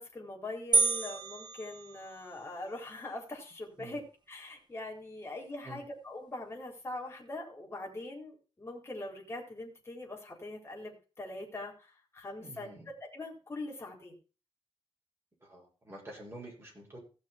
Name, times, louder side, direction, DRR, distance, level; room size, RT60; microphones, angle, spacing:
voice 1, 0.0-12.7 13.0-14.2, left 2 dB, 25° left, 0 dB, 4.1 m, -42 dB
sound 1, 0.7-2.5, right 4 dB, 45° right, 1.9 m, -30 dB
voice 2, 12.4-12.9 15.4-17.0, right 2 dB, 25° right, -2 dB, 6.8 m, -48 dB
16.5 x 6.4 x 4.4 m, 0.35 s
wide cardioid pair, 120°, 10 cm